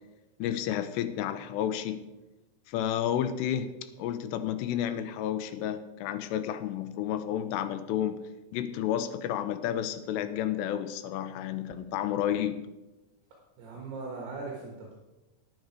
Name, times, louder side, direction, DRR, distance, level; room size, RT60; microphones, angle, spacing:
voice 1, 0.4-2.0 2.7-8.2 8.5-12.6, left 10 dB, 85° left, 11 dB, 2.7 m, -31 dB
voice 2, 13.6-15.0, right 3 dB, 65° right, -2 dB, 3.4 m, -39 dB
10.5 x 10.0 x 4.7 m, 1.0 s
omnidirectional pair, 5.2 m